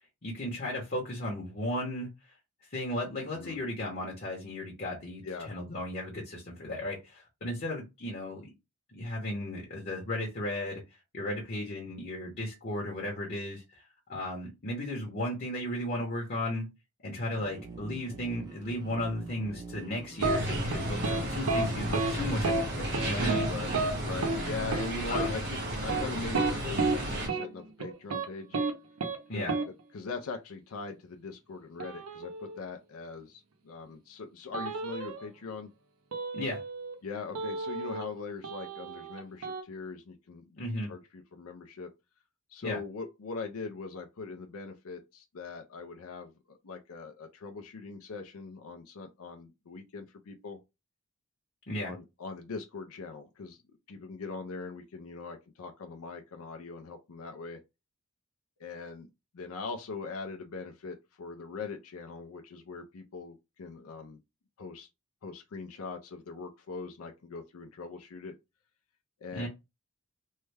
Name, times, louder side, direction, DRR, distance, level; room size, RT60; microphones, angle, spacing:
voice 1, 0.2-2.1 2.7-8.5 8.9-10.8 11.1-13.8 14.1-16.7 17.0-23.5 25.1-25.3 29.3-29.5 36.3-36.6 40.6-40.9 42.6-42.8 51.7-51.9 69.3-69.5, left 1 dB, 45° left, 0.9 m, -35 dB
sound 1, 17.4-24.8, right 3 dB, 20° right, 0.6 m, -45 dB
sound 2, 20.2-27.3, right 1 dB, 50° right, 1.3 m, -33 dB
sound 3, 20.2-20.4 20.7-21.2 21.5-21.7 21.9-22.1 22.4-22.6 22.9-23.5 23.7-23.9 24.2-24.4 24.7-24.9 25.1-25.3 25.8-27.0 27.3-27.4 27.8-28.3 28.5-28.7 29.0-29.2 29.5-29.6 31.8-32.6 34.5-35.3 36.1-36.9 37.4-38.2 38.4-39.6, right 3 dB, 80° right, 0.6 m, -31 dB
voice 2, 24.0-28.6 29.3-29.5 29.9-35.7 37.0-40.6 40.9-41.9 42.5-50.6 51.8-53.6 53.9-57.6 58.6-59.1 59.3-64.2 64.6-64.9 65.2-68.4 69.2-69.5, left 4 dB, 75° left, 0.5 m, -41 dB
3.2 x 2.2 x 3.3 m
head